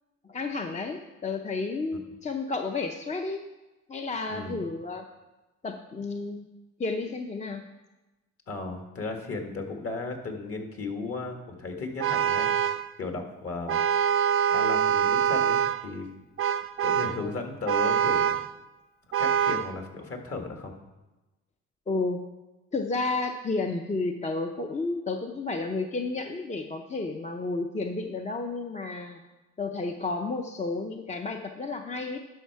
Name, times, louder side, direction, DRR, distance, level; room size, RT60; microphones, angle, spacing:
voice 1, 0.2-3.4 3.9-5.1 5.6-6.4 6.8-7.6 17.2-17.3 21.9-22.2 22.7-29.2 29.6-32.2, left 3 dB, 25° left, 4 dB, 0.6 m, -31 dB
voice 2, 4.3-4.6 8.5-12.5 13.0-13.8 14.5-16.1 16.8-18.4 19.2-20.7, left 3 dB, 50° left, 4 dB, 1.7 m, -35 dB
Vehicle horn car horn honking, 12.0-12.9 13.7-15.9 16.4-17.2 17.7-18.5 19.1-19.7, right 8 dB, 45° right, 0.4 m, -25 dB
11.5 x 5.6 x 4.6 m, 1.1 s
cardioid pair, 90°, 30 cm